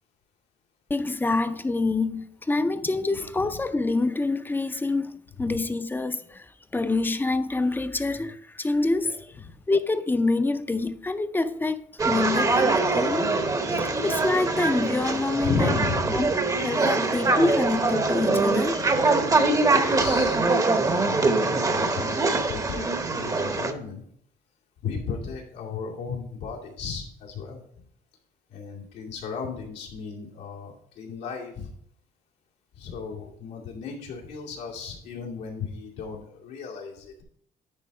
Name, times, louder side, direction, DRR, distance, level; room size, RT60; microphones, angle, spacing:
voice 1, 0.9-13.3 13.7-15.7 16.1-16.3 16.6-18.9, left 3 dB, 10° left, 0.5 m, -26 dB
sound 1, 12.0-23.7, right 3 dB, 20° right, 0.8 m, -23 dB
voice 2, 15.4-16.2 19.7-20.5 20.8-24.0 24.8-27.6 28.5-31.7 32.7-37.1, left 5 dB, 90° left, 2.3 m, -34 dB
10.0 x 4.0 x 4.7 m
cardioid pair, 110°, 17 cm